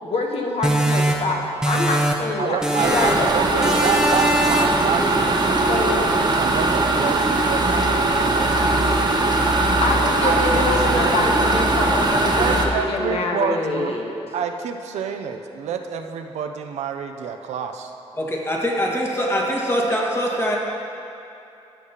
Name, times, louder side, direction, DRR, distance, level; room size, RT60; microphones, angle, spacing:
voice 1, 0.0-1.4 1.6-3.9 5.7-6.1 9.8-14.1, left 3 dB, 60° left, 1 dB, 1.0 m, -25 dB
sound 1, 0.6-2.3 2.6-3.3 3.6-4.9, right 1 dB, 5° right, 0.8 m, -22 dB
voice 2, 2.4-9.2 10.2-11.4 12.2-17.9, right 7 dB, 90° right, 6 dB, 0.5 m, -28 dB
sound 2, 2.8-12.7, right 2 dB, 40° right, 1.0 m, -20 dB
voice 3, 18.1-20.6, equal, 20° left, -2 dB, 1.6 m, -23 dB
14.5 x 6.6 x 2.9 m, 2.8 s
cardioid pair, 80°, 11 cm